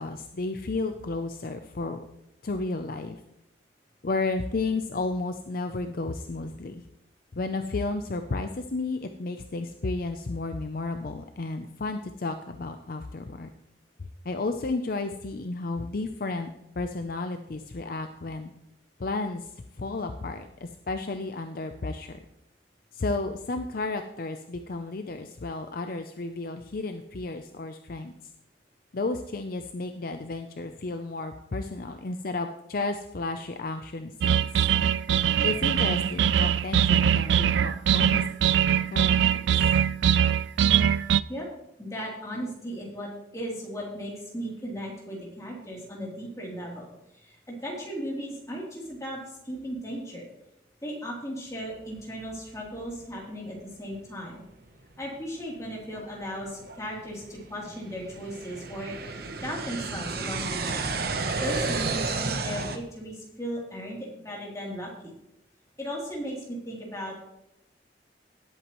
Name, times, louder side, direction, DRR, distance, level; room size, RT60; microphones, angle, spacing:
voice 1, 0.0-2.0 2.4-3.2 4.0-6.8 7.3-13.5 14.0-18.5 19.0-19.5 19.8-22.2 22.9-28.1 28.9-34.5 35.4-39.7, left 3 dB, 50° left, 7 dB, 0.6 m, -32 dB
sound 1, 34.2-41.2, right 9 dB, 75° right, 0.3 m, -22 dB
voice 2, 41.8-50.3 50.8-54.4 55.0-60.9 61.4-64.0 64.2-65.1 65.8-67.2, equal, 15° left, -3 dB, 3.2 m, -36 dB
sound 2, 53.9-54.1 54.6-54.7 55.4-62.8, right 3 dB, 55° right, 1.0 m, -32 dB
18.0 x 8.1 x 3.1 m, 0.85 s
head